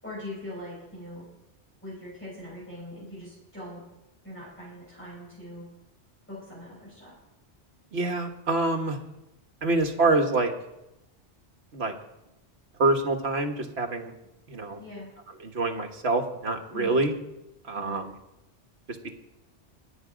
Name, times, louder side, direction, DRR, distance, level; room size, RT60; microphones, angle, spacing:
voice 1, 0.0-1.2 1.8-3.8 4.2-5.6 6.3-7.1 14.8-15.1 16.7-16.9 17.7-18.0, left 1 dB, 10° left, -8 dB, 6.8 m, -41 dB
voice 2, 7.9-9.0 9.6-10.5 11.7-12.0 12.8-14.1 14.5-14.8 15.4-17.1 17.6-18.1 18.9-19.0, right 2 dB, 65° right, 4 dB, 1.7 m, -26 dB
20.5 x 8.6 x 5.1 m, 0.91 s
omnidirectional pair, 1.2 m